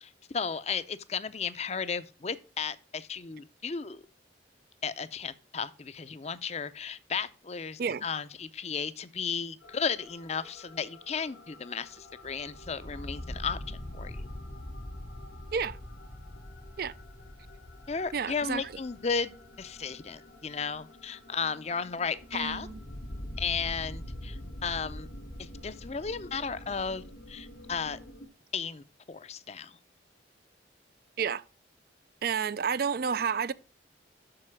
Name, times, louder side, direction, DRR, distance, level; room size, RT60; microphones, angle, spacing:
voice 1, 0.0-4.0 4.8-14.3 17.9-22.7 23.4-25.1 25.4-28.0 28.5-29.8, left 5 dB, 35° left, 0.5 m, -34 dB
sound 1, 9.6-28.3, left 1 dB, 85° left, 2.7 m, -44 dB
voice 2, 18.1-18.7 22.3-22.8 31.2-31.4 32.2-33.5, right 6 dB, 50° right, 0.4 m, -30 dB
7.7 x 6.5 x 6.1 m
head